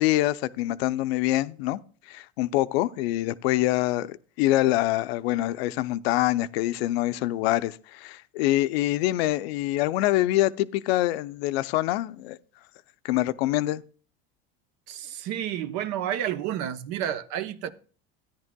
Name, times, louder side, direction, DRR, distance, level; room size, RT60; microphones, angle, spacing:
voice 1, 0.0-1.8 2.1-12.4 13.0-13.8, left 16 dB, 75° left, 0.6 m, -25 dB
voice 2, 14.9-17.7, right 10 dB, 60° right, 0.8 m, -30 dB
14.0 x 10.0 x 2.2 m
supercardioid pair, 100°, 31 cm